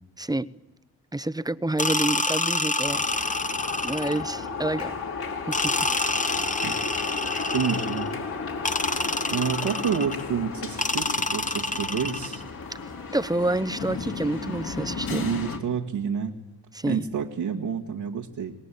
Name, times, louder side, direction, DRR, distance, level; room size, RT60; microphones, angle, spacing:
voice 1, 0.2-0.5 1.1-3.0 3.8-5.0 5.5-5.8 6.1-6.5 13.1-15.3 16.7-17.1, right 2 dB, 10° right, 0.9 m, -28 dB
sound 1, 1.8-4.3 5.5-8.1 8.6-10.2 10.8-12.4, left 2 dB, 20° left, 1.4 m, -27 dB
sound 2, 2.8-15.6, left 5 dB, 60° left, 3.8 m, -34 dB
voice 2, 7.5-8.1 9.3-12.4 15.1-16.4 16.8-18.5, right 7 dB, 75° right, 2.1 m, -29 dB
26.0 x 19.5 x 8.6 m
supercardioid pair, 45°, 41 cm